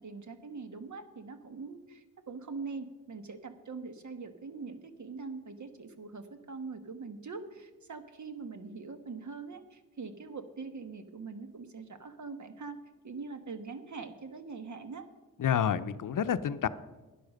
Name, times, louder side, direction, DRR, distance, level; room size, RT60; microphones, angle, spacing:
voice 1, 0.0-15.0, right 4 dB, 55° right, 9 dB, 1.4 m, -43 dB
voice 2, 15.4-16.7, left 8 dB, 65° left, 13 dB, 0.6 m, -29 dB
11.5 x 10.0 x 6.5 m, 1.2 s
cardioid pair, 75°, 34 cm